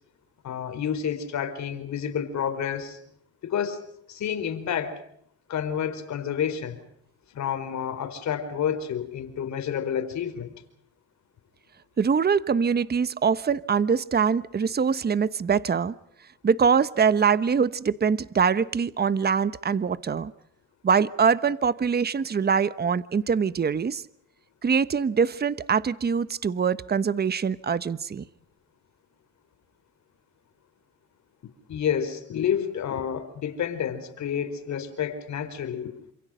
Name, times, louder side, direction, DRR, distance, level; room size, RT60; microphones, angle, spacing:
voice 1, 0.4-3.0 3.4-5.0 5.5-6.8 7.3-10.5 31.7-35.9, left 8 dB, 65° left, 4.6 m, -29 dB
voice 2, 12.0-15.9 16.4-20.3 20.8-24.0 24.6-28.2, right 6 dB, 30° right, 1.1 m, -23 dB
28.5 x 27.5 x 5.2 m
cardioid pair, 90°, 30 cm